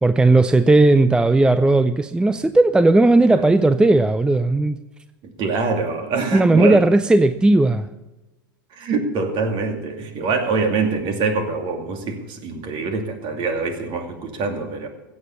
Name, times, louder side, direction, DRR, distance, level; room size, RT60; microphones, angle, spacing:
voice 1, 0.0-4.8 6.3-7.9, right 2 dB, 10° right, 13 dB, 0.5 m, -16 dB
voice 2, 5.2-6.9 8.7-14.9, right 4 dB, 45° right, 5 dB, 2.5 m, -24 dB
16.0 x 7.6 x 6.9 m, 1.1 s
hypercardioid pair, 90°, 11 cm